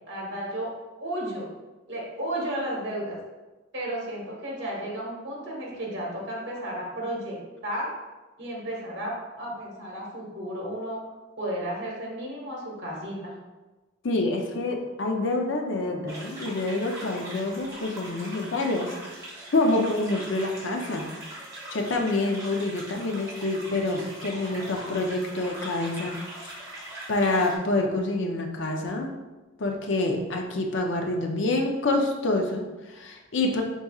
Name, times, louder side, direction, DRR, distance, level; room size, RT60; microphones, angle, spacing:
voice 1, 0.1-0.7 1.0-1.5 1.9-3.2 3.7-7.4 7.6-7.9 8.4-11.0 11.4-13.3, right 1 dB, 60° right, -3 dB, 1.4 m, -33 dB
voice 2, 14.0-18.9 19.5-21.1 21.7-26.2 26.4-26.5 27.1-29.1 29.6-33.6, left 2 dB, 65° left, 2 dB, 0.6 m, -27 dB
sound 1, 16.1-27.6, right 1 dB, 15° right, 1.2 m, -41 dB
4.7 x 4.1 x 2.4 m, 1.1 s
head